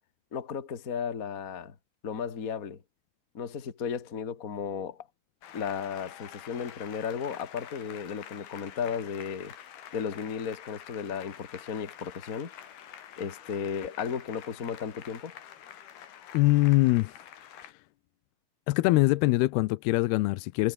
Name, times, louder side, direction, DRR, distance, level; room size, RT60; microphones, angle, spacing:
voice 1, 0.3-1.7 2.0-2.8 3.3-5.1 5.5-9.5 9.9-12.5 13.2-15.3, left 7 dB, 40° left, 1.2 m, -34 dB
Applause, 5.4-17.7, left 10 dB, 60° left, 4.0 m, -47 dB
voice 2, 16.3-17.1 17.6-17.7 18.7-20.7, left 20 dB, 80° left, 2.3 m, -23 dB
omnidirectional pair, 5.2 m